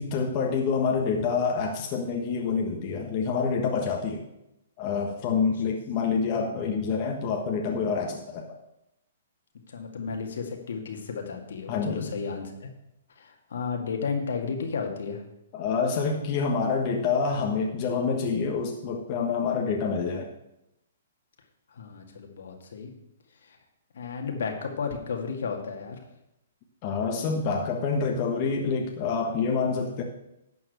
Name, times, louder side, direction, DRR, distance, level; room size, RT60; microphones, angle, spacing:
voice 1, 0.0-4.2 4.8-8.6 11.7-12.1 15.5-20.3 26.8-30.0, left 5 dB, 35° left, 1 dB, 1.4 m, -27 dB
voice 2, 9.7-12.7 13.2-15.2 21.7-22.9 23.4-23.6 23.9-26.0, left 5 dB, 70° left, 3 dB, 2.1 m, -33 dB
11.5 x 4.7 x 8.0 m, 0.86 s
hypercardioid pair, 140°, 0 cm